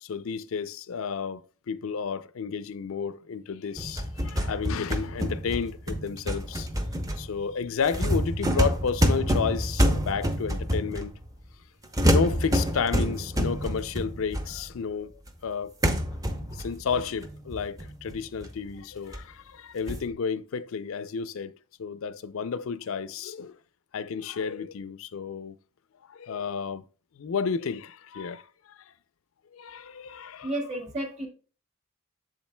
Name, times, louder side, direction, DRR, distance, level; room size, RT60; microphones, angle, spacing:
voice 1, 0.0-6.7 7.2-11.1 12.0-15.1 15.4-15.7 16.5-23.6 23.9-25.5 26.1-26.8 27.2-28.8 29.5-30.5, left 6 dB, 80° left, 0.4 m, -32 dB
sound 1, 3.8-11.3 11.9-14.9 15.3-15.4 15.8-18.7 19.1-19.2 19.9-20.1, equal, 15° right, 0.7 m, -27 dB
voice 2, 30.4-31.3, right 1 dB, 30° right, 1.7 m, -31 dB
7.8 x 7.3 x 2.2 m
head